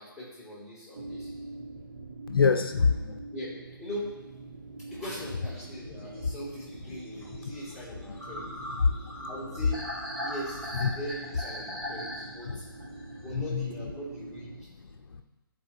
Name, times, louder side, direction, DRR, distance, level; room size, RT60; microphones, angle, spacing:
voice 1, 0.0-1.3 3.3-4.2 4.9-8.7 9.1-9.9 10.2-12.6 13.2-14.7, equal, 10° right, -10 dB, 2.5 m, -41 dB
sound 1, 1.0-14.7, right 3 dB, 50° right, 0.6 m, -45 dB
voice 2, 2.3-3.2 6.2-6.3 7.3-7.5 8.1-8.2 8.8-9.3 10.8-10.9 12.5-12.6 12.9-13.9 14.8-15.2, left 5 dB, 75° left, 6 dB, 0.6 m, -27 dB
sound 2, 5.6-13.3, left 1 dB, 75° right, 2.3 m, -40 dB
12.5 x 4.3 x 2.9 m, 1.1 s
figure-of-eight pair, 145°, 12 cm